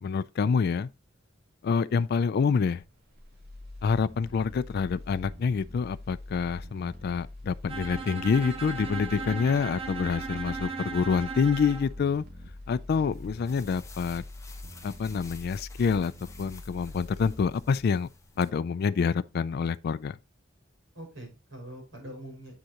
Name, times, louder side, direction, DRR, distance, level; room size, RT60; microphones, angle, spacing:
voice 1, 0.0-0.9 1.6-2.8 3.8-12.2 12.7-14.2 14.8-16.1 16.4-18.1 18.4-20.2, left 5 dB, 50° left, 0.3 m, -27 dB
sound 1, 2.7-18.8 19.1-19.2, left 1 dB, 55° right, 2.3 m, -44 dB
Bowed string instrument, 7.7-11.9, right 4 dB, 30° right, 1.3 m, -36 dB
voice 2, 12.9-13.2 20.9-22.6, right 1 dB, 70° right, 5.3 m, -44 dB
sound 2, 13.1-18.5, left 4 dB, 15° left, 1.0 m, -52 dB
8.2 x 6.3 x 2.9 m
head